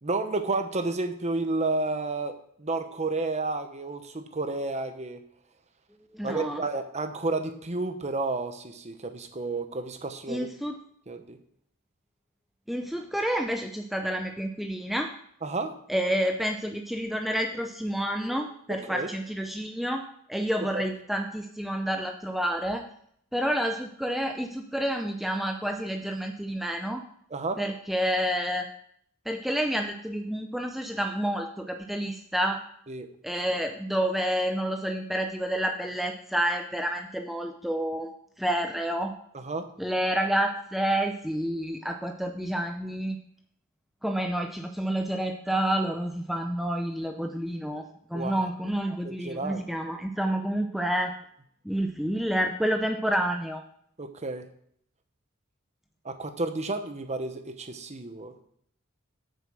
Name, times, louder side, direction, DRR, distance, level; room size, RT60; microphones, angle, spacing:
voice 1, 0.0-2.3 2.6-5.2 6.2-10.5 11.1-11.4 15.4-15.7 18.8-19.1 20.6-20.8 27.3-27.6 32.9-33.1 39.3-39.6 48.1-48.5 49.0-49.6 54.0-54.4 56.0-58.3, right 3 dB, 35° right, 7 dB, 1.0 m, -31 dB
voice 2, 6.1-6.6 10.3-10.7 12.7-15.1 15.9-20.0 20.3-22.8 23.3-27.0 27.6-28.7 29.3-32.6 33.2-38.1 38.4-39.1 39.8-43.2 44.0-51.1 51.6-53.6, right 1 dB, ahead, 4 dB, 0.6 m, -29 dB
8.8 x 6.8 x 6.2 m, 0.66 s
head